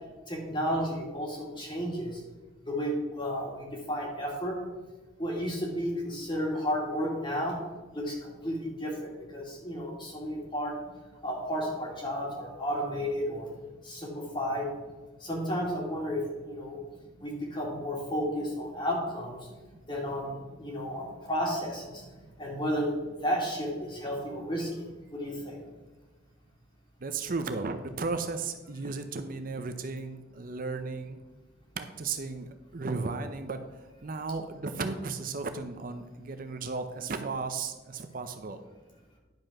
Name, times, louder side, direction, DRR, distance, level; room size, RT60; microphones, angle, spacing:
voice 1, 0.3-2.2 2.6-4.6 5.2-7.6 7.9-10.7 11.2-13.5 13.8-14.7 15.2-16.8 17.2-19.4 19.9-22.0 22.4-22.9 23.2-24.8 25.1-25.6, equal, 25° left, -2 dB, 2.6 m, -32 dB
voice 2, 27.0-31.2 31.8-33.6 34.0-38.6, right 4 dB, 45° right, 8 dB, 0.6 m, -35 dB
10.5 x 5.2 x 6.0 m, 1.2 s
head